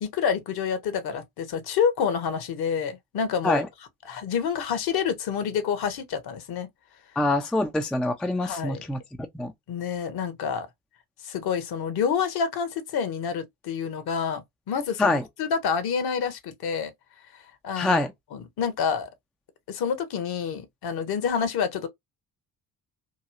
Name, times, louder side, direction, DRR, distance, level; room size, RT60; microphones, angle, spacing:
voice 1, 0.0-3.6 4.0-6.7 8.4-8.8 9.7-10.7 11.2-16.9 17.6-18.0 18.3-19.1 19.7-21.9, left 7 dB, 50° left, 1.0 m, -28 dB
voice 2, 7.2-9.0 9.3-9.5 15.0-15.2 17.8-18.1, left 2 dB, ahead, 0.4 m, -24 dB
3.0 x 2.7 x 2.5 m
figure-of-eight pair, 50°, 47 cm